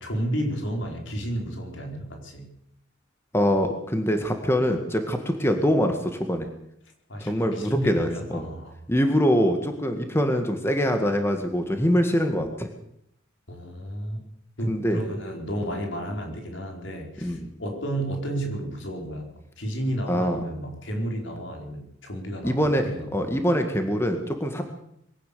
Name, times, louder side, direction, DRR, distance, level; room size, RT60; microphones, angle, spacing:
voice 1, 0.0-2.5 7.1-8.7 13.5-14.2 14.6-19.3 19.6-23.1, right 1 dB, 70° left, 2 dB, 4.6 m, -32 dB
voice 2, 3.3-6.5 7.3-8.5 8.9-12.7 14.7-15.0 17.2-17.5 20.1-20.4 22.4-22.9 23.1-24.6, equal, 10° left, 5 dB, 1.9 m, -24 dB
22.5 x 17.0 x 7.0 m, 0.73 s
head